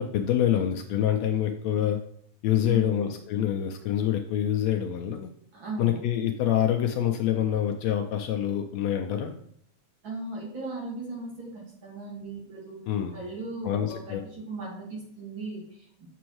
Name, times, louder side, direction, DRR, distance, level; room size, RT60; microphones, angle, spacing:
voice 1, 0.0-2.0 2.4-5.3 5.8-9.3 12.9-13.2 13.6-14.2, left 10 dB, 80° left, 3 dB, 1.7 m, -26 dB
voice 2, 2.6-3.1 5.5-6.0 10.0-12.8 13.1-16.1, right 2 dB, 45° right, -4 dB, 2.5 m, -37 dB
7.1 x 7.0 x 3.1 m, 0.66 s
omnidirectional pair, 3.4 m